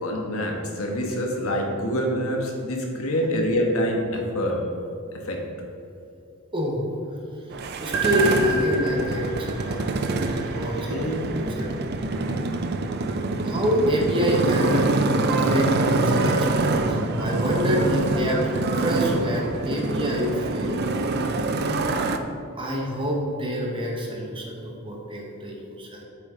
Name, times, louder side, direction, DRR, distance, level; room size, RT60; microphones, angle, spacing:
voice 1, 0.0-4.6 5.1-5.4 10.8-11.4 12.1-12.5, equal, 80° left, 1 dB, 1.2 m, -26 dB
voice 2, 6.5-7.0 7.3-7.5 7.8-9.9 10.2-11.7 13.4-18.4 18.8-20.8 21.2-21.4 22.5-26.0, equal, 25° right, -1 dB, 1.1 m, -27 dB
Motorcycle, 7.5-22.2, right 3 dB, 45° right, 0.4 m, -25 dB
sound 1, 7.9-10.9, right 3 dB, 80° right, 0.8 m, -29 dB
8.3 x 6.4 x 3.8 m, 2.7 s
head